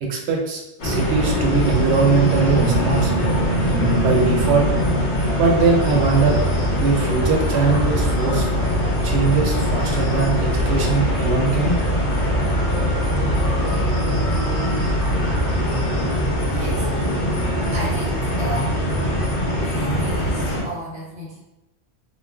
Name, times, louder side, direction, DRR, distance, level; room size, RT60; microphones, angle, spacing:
voice 1, 0.0-3.3 4.0-4.8 5.4-6.5 6.8-8.5 9.0-11.8, right 4 dB, 85° right, 0 dB, 0.9 m, -21 dB
sound 1, 0.8-20.6, equal, 60° left, 0.8 m, -21 dB
sound 2, 2.5-7.6 8.1-9.2 9.7-9.8, left 1 dB, 30° left, 0.7 m, -34 dB
voice 2, 16.5-17.1 17.7-18.8 19.6-21.4, right 2 dB, 10° right, -5 dB, 0.4 m, -33 dB
3.1 x 2.1 x 2.3 m, 0.92 s
omnidirectional pair, 1.1 m